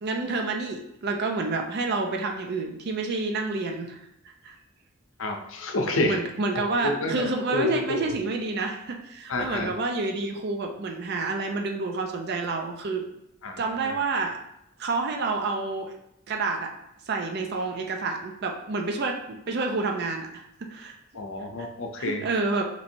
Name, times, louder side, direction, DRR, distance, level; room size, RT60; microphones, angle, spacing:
voice 1, 0.0-4.0 4.4-4.5 5.9-13.1 13.6-14.4 14.8-15.9 16.3-16.7 17.1-20.9 22.0-22.6, right 3 dB, 55° right, 3 dB, 0.4 m, -29 dB
voice 2, 5.2-6.2 6.8-8.1 9.3-9.7 13.4-13.6 13.8-13.9 21.1-22.2, left 2 dB, 75° left, 3 dB, 0.6 m, -28 dB
3.0 x 2.6 x 4.3 m, 0.81 s
head